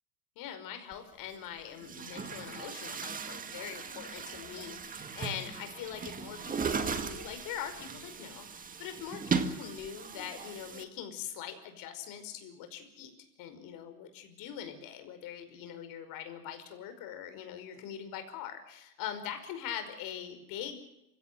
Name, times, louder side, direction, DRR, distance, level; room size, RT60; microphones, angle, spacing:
voice 1, 0.4-9.2 9.5-13.1 13.4-20.8, left 9 dB, 45° left, 8 dB, 5.4 m, -42 dB
Chatter / Gurgling / Tap, 0.9-1.0 1.7-10.8, right 5 dB, 15° right, 2.0 m, -37 dB
28.0 x 17.0 x 7.8 m, 0.88 s
supercardioid pair, 130°, 47 cm